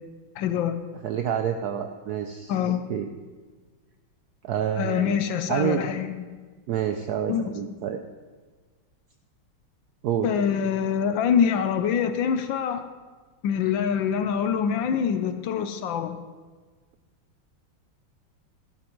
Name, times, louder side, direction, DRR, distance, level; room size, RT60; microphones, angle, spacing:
voice 1, 0.4-0.8 2.5-2.8 4.8-6.1 7.3-7.8 10.2-12.9 13.4-16.2, left 8 dB, 70° left, 9 dB, 1.3 m, -25 dB
voice 2, 1.0-2.5 2.9-3.1 4.4-5.2 5.5-5.8 6.7-8.0 10.0-10.3, right 9 dB, 80° right, 6 dB, 0.9 m, -28 dB
12.0 x 12.0 x 3.1 m, 1.4 s
omnidirectional pair, 2.2 m